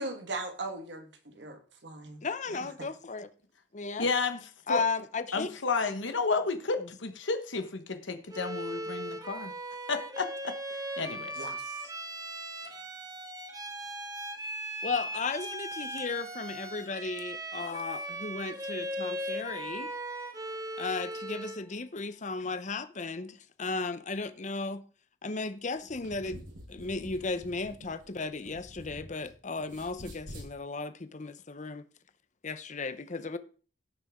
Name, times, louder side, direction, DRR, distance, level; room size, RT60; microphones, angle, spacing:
voice 1, 0.0-2.2 2.5-2.7 11.3-11.9, right 2 dB, 65° right, 1.7 m, -39 dB
voice 2, 2.2-3.3 3.7-4.1 4.7-5.5 14.8-19.9 20.8-24.8 25.2-26.4 26.7-31.8 32.4-33.4, left 4 dB, 40° left, 0.7 m, -35 dB
voice 3, 4.0-4.8 5.3-9.5 9.9-10.5 11.0-11.3, left 4 dB, 80° left, 1.2 m, -31 dB
Bowed string instrument, 8.3-21.7, right 1 dB, 20° right, 1.3 m, -38 dB
sound 1, 25.8-29.3 29.6-30.5, equal, 90° right, 7.1 m, -47 dB
16.5 x 6.6 x 3.7 m
head